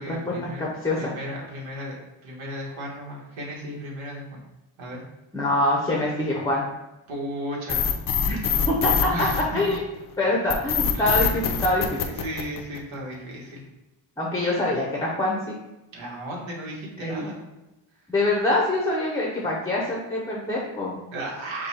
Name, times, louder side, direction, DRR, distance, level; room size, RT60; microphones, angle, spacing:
voice 1, 0.0-0.6 0.9-2.0 2.2-4.4 4.8-5.0 7.1-7.9 9.1-9.6 10.9-11.1 12.2-13.6 15.9-17.4 21.1-21.7, equal, 80° right, -2 dB, 1.5 m, -35 dB
voice 2, 0.6-1.1 5.3-6.7 8.3-8.4 8.7-9.3 9.5-9.8 10.2-12.1 14.2-15.5 17.0-17.3 18.1-20.9, left 1 dB, 10° left, -3 dB, 0.6 m, -25 dB
sound 1, 7.7-10.0 10.5-12.9, left 7 dB, 45° left, 0.5 m, -24 dB
5.3 x 2.3 x 4.2 m, 0.97 s
wide cardioid pair, 160°, 46 cm